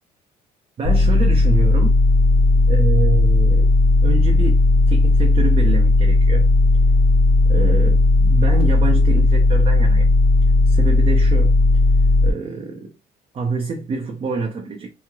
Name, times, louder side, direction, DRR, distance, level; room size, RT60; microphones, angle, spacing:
sound 1, 0.8-12.3, left 2 dB, 40° left, 0.4 m, -15 dB
voice 1, 0.8-2.0 2.6-3.7 4.0-6.5 7.5-10.1 10.6-11.5 12.2-12.9 13.3-14.9, right 4 dB, 35° right, 0.5 m, -27 dB
3.0 x 2.7 x 2.3 m
cardioid pair, 110°, 17 cm